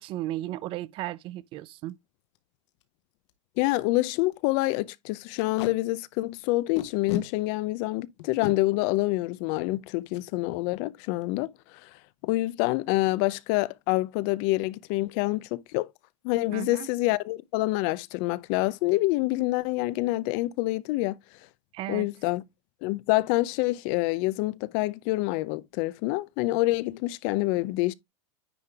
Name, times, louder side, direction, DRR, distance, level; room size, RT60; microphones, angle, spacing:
voice 1, 0.0-2.0 16.5-16.9 21.7-22.1, right 15 dB, 35° right, 0.4 m, -35 dB
Packing tape duct tape, 1.7-1.9 2.4-2.5 2.7-2.8 3.3-3.4 3.7-3.8 4.2-4.3 5.4-5.7 6.8-7.3 8.2-8.5 10.1-10.3 10.6-10.8 11.0-11.5, left 10 dB, 65° left, 1.3 m, -34 dB
voice 2, 3.6-11.5 11.8-11.9 12.2-15.9 16.2-21.2 21.9-22.4 22.8-27.9, left 19 dB, 50° left, 0.5 m, -27 dB
9.8 x 3.7 x 3.4 m
supercardioid pair, 140°, 16 cm